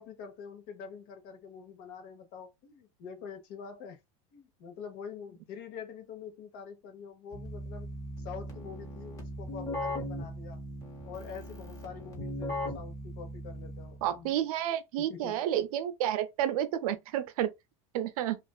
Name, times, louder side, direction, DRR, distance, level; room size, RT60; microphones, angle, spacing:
voice 1, 0.0-4.0 4.3-7.9 8.2-10.6 11.0-14.5 15.0-15.4, left 6 dB, 60° left, 0.9 m, -45 dB
Keyboard (musical), 7.3-14.2, left 1 dB, 20° left, 1.1 m, -39 dB
voice 2, 14.0-17.5 17.9-18.4, right 11 dB, 80° right, 0.5 m, -30 dB
2.4 x 2.4 x 2.2 m
supercardioid pair, 115°, 18 cm